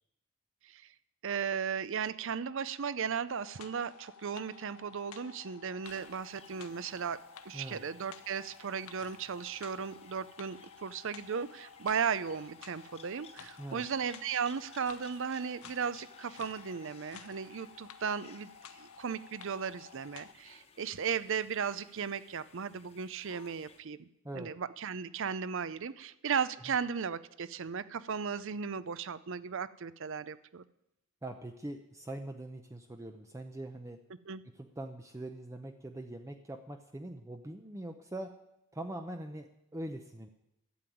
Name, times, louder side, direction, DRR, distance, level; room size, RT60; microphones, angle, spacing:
voice 1, 1.2-18.5 18.8-24.1 24.3-30.6 34.3-34.4, right 6 dB, 60° right, 16 dB, 0.5 m, -36 dB
sound 1, 3.3-20.3, left 6 dB, 75° left, 0.8 m, -53 dB
sound 2, 5.8-23.8, left 5 dB, 30° left, 1.2 m, -60 dB
voice 2, 31.2-34.0 34.4-38.3 38.7-40.3, right 1 dB, 15° right, 6 dB, 0.6 m, -43 dB
12.5 x 7.7 x 9.2 m, 0.84 s
head